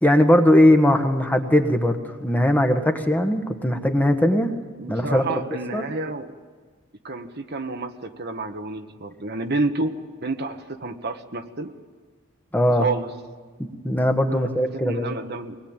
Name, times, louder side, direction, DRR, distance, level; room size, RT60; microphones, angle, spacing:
voice 1, 0.0-4.5 4.9-5.4 5.7-5.8 12.5-12.9 13.6-15.1, left 1 dB, 10° left, 5 dB, 1.5 m, -19 dB
voice 2, 4.8-6.3 7.0-11.7 12.7-13.1 14.3-14.4 14.7-15.6, right 3 dB, 50° right, 6 dB, 1.3 m, -29 dB
23.5 x 20.5 x 8.9 m, 1.5 s
head